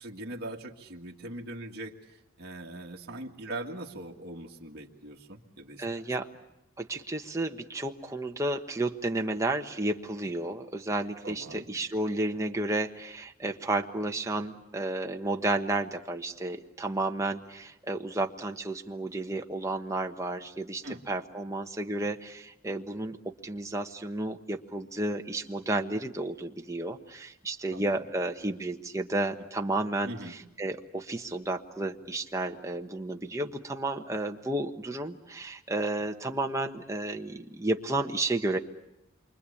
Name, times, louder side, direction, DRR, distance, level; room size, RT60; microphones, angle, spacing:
voice 1, 0.0-1.9 2.4-6.1 11.2-11.7 20.8-21.0 27.7-28.0 30.1-30.3, right 1 dB, 50° right, -1 dB, 2.1 m, -41 dB
voice 2, 5.8-6.3 6.8-38.6, right 2 dB, 15° right, 4 dB, 1.2 m, -32 dB
28.0 x 24.5 x 8.6 m, 0.90 s
head